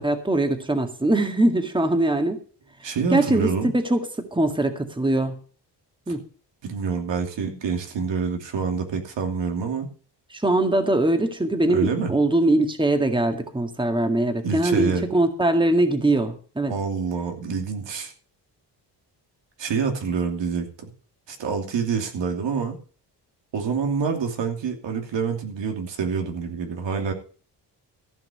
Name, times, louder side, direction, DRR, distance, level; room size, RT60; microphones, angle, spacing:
voice 1, 0.0-2.4 2.8-5.4 6.1-6.2 10.3-16.7, right 2 dB, 10° right, 6 dB, 1.9 m, -22 dB
voice 2, 2.8-3.7 6.1-6.2 6.6-9.9 11.7-12.1 14.4-15.0 16.7-18.1 19.6-20.9 21.3-22.8 23.5-27.1, right 5 dB, 80° right, 3 dB, 2.8 m, -27 dB
14.5 x 5.9 x 7.8 m, 0.41 s
cardioid pair, 100°, 43 cm